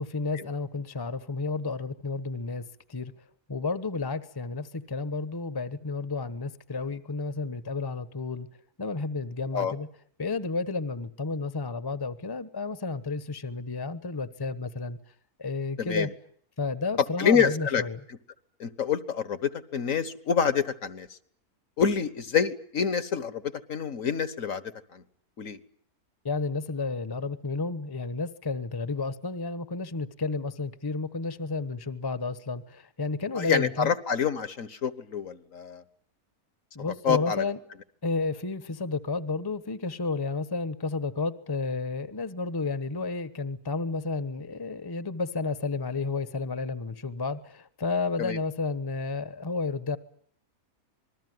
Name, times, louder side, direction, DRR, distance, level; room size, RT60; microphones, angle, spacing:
voice 1, 0.0-2.6 2.9-3.1 3.5-8.5 8.8-9.9 10.2-15.0 15.4-16.1 16.6-18.0 26.2-33.9 36.7-37.6 38.0-50.0, left 3 dB, 15° left, 13 dB, 1.0 m, -31 dB
voice 2, 15.8-16.1 17.2-17.8 18.6-21.2 21.8-24.6 24.9-25.0 25.4-25.6 33.3-35.8 37.0-37.5 48.2-48.4, left 7 dB, 60° left, 14 dB, 1.7 m, -27 dB
27.0 x 21.0 x 9.5 m, 0.63 s
omnidirectional pair, 1.6 m